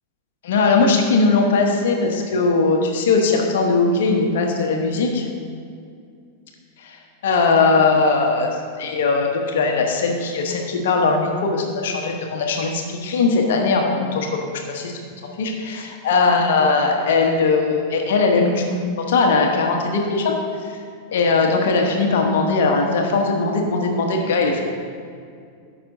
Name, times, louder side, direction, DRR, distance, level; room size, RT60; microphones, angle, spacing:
voice 1, 0.4-5.3 6.8-7.0 7.2-8.5 8.8-14.9 15.4-18.6 19.0-20.3 20.7-20.8 21.1-24.6, left 4 dB, 60° left, 2 dB, 1.1 m, -19 dB
14.0 x 6.0 x 2.7 m, 2.3 s
figure-of-eight pair, 90°, 0 cm